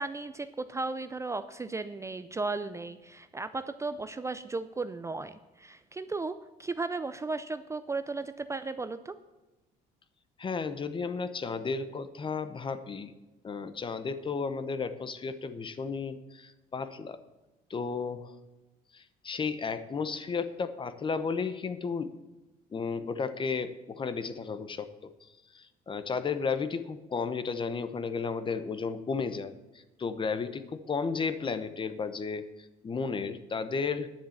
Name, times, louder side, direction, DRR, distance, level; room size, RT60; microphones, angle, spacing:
voice 1, 0.0-9.2, right 3 dB, 15° right, 11 dB, 0.4 m, -35 dB
voice 2, 10.4-13.1 13.4-17.2 17.7-18.4 18.9-22.1 22.7-34.1, left 5 dB, 30° left, 12 dB, 0.8 m, -33 dB
10.5 x 7.3 x 7.2 m, 1.1 s
cardioid pair, 110°, 17 cm